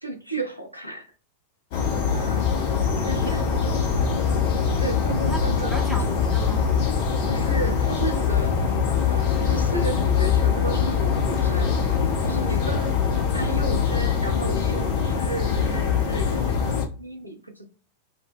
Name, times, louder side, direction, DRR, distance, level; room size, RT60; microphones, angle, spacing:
voice 1, 0.0-1.1 2.1-2.4 3.0-3.5 4.8-6.2 7.2-8.6 9.0-11.7 12.2-12.9 13.3-17.7, right 2 dB, 90° left, 0.5 m, -33 dB
sound 1, 1.7-16.8, left 6 dB, 50° left, 0.6 m, -23 dB
voice 2, 2.7-3.8 5.3-6.8 12.6-13.0, equal, 5° left, 0.7 m, -37 dB
2.0 x 2.0 x 3.4 m
figure-of-eight pair, 90°, 0 cm